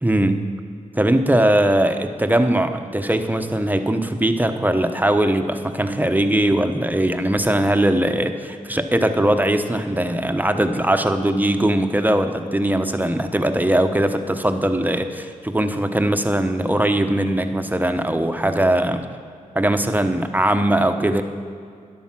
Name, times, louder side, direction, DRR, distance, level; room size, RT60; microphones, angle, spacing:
voice 1, 0.0-0.5 0.9-19.1 19.5-21.2, right 1 dB, 10° right, 7 dB, 1.1 m, -20 dB
13.5 x 10.5 x 6.1 m, 2.3 s
cardioid pair, 60°, 14 cm